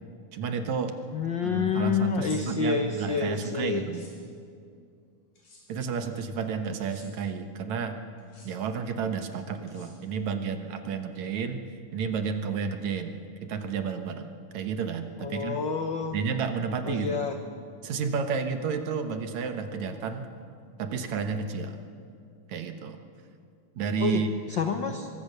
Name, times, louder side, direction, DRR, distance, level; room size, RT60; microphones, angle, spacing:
voice 1, 0.3-0.9 1.4-4.0 5.7-8.0 8.4-11.6 11.9-15.6 16.1-17.2 17.8-20.3 20.8-21.8 22.5-23.0 23.8-24.3, right 6 dB, 65° right, 7 dB, 2.5 m, -31 dB
voice 2, 1.1-3.9 15.2-16.2 16.8-17.3 24.0-24.2 24.5-25.1, left 6 dB, 75° left, 6 dB, 1.0 m, -28 dB
sound 1, 2.1-2.4 3.8-4.1 5.3-5.6 6.8-7.1 8.2-8.5 9.7-10.3, left 3 dB, 90° left, 7.5 m, -50 dB
23.5 x 23.5 x 6.7 m, 2.4 s
omnidirectional pair, 3.6 m